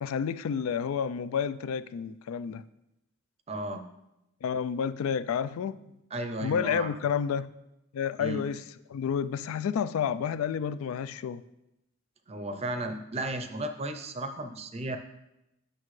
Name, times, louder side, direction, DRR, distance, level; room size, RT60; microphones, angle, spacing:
voice 1, 0.0-2.6 4.4-5.8 6.4-7.5 7.9-8.6 8.9-11.4, left 7 dB, 80° left, 15 dB, 0.3 m, -30 dB
voice 2, 3.5-3.8 6.1-6.9 8.2-8.4 12.3-15.0, right 1 dB, 30° right, 7 dB, 0.5 m, -34 dB
9.4 x 6.5 x 3.2 m, 0.89 s
head